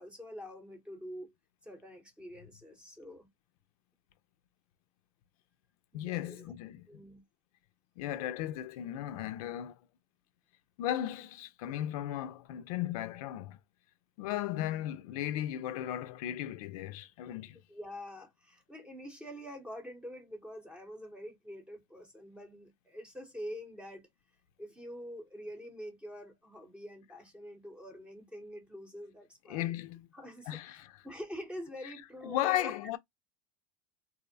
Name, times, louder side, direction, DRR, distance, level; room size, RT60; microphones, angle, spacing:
voice 1, 0.0-1.3 1.6-3.3 5.9-6.5 6.9-7.2 17.3-17.4 17.7-24.1 24.6-29.7 30.1-30.8 31.0-32.8, equal, 5° right, 0.7 m, -46 dB
voice 2, 5.9-7.0 8.0-9.7 10.8-13.6 14.2-17.6 29.5-30.1 30.5-30.9 32.2-33.0, left 12 dB, 75° left, 0.4 m, -36 dB
2.5 x 2.0 x 2.5 m
supercardioid pair, 130°, 19 cm